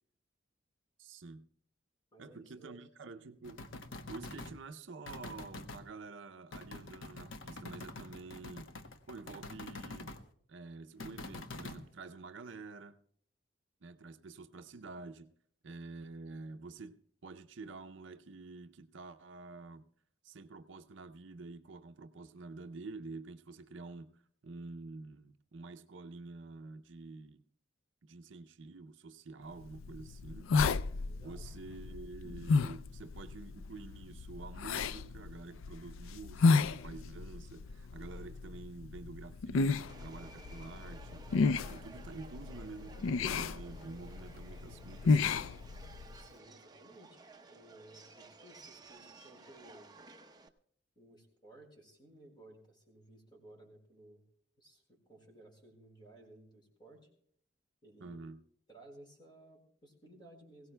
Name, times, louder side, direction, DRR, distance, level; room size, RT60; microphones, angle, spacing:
voice 1, 1.0-1.5 2.2-3.7 4.1-8.7 9.1-10.1 10.5-13.0 13.8-15.3 15.6-19.9 20.2-27.4 28.0-30.5 31.2-41.2 41.6-45.5 58.0-58.4, right 3 dB, 65° right, 0.6 m, -48 dB
voice 2, 2.1-2.9 31.0-31.4 46.2-49.9 50.9-54.2 54.6-57.1 57.8-58.2 58.7-60.7, right 1 dB, 25° left, 4.7 m, -58 dB
sound 1, 3.4-4.6 5.1-5.8 6.5-10.2 11.0-11.8, left 2 dB, 75° left, 1.0 m, -46 dB
sound 2, 29.6-46.2, left 4 dB, 90° left, 0.4 m, -33 dB
Subway metro underground, 39.9-50.5, right 3 dB, 20° right, 0.7 m, -55 dB
21.0 x 17.0 x 2.2 m
head